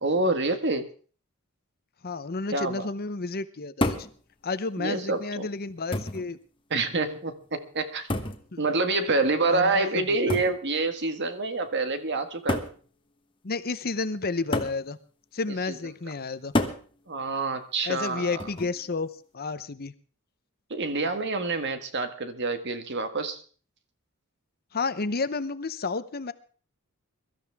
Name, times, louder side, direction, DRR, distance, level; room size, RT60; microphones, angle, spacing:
voice 1, 0.0-0.9 2.5-2.9 4.8-5.5 6.7-8.1 8.6-12.7 15.7-15.8 17.1-18.5 20.7-23.4, right 3 dB, 55° right, 8 dB, 1.6 m, -27 dB
voice 2, 2.0-4.0 4.4-6.4 8.5-8.6 9.5-9.9 13.4-15.0 15.3-16.5 17.8-19.1 19.3-19.9 24.7-26.3, left 3 dB, 45° left, 13 dB, 0.8 m, -31 dB
sound 1, 3.8-4.2 5.2-5.3 5.9-6.3 8.1-8.5 10.3-10.6 11.6-11.7 12.5-12.8 14.5-14.8 16.5-16.9 18.4-18.8, left 1 dB, 25° left, 1.2 m, -28 dB
23.0 x 13.0 x 3.5 m, 0.40 s
head